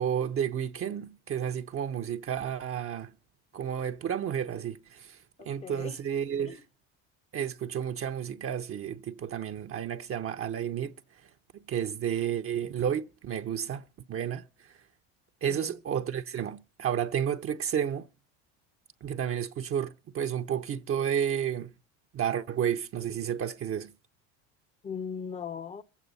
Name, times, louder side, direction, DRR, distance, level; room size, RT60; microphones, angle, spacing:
voice 1, 0.0-3.1 3.5-5.2 5.4-6.6 7.3-11.0 11.7-14.4 15.4-18.1 19.0-21.7 22.1-23.9, right 9 dB, 40° right, 0.8 m, -31 dB
voice 2, 5.4-6.0 6.5-6.6 15.4-15.8 24.8-25.8, left 6 dB, 20° left, 0.7 m, -39 dB
23.0 x 8.3 x 4.1 m
supercardioid pair, 90°, 36 cm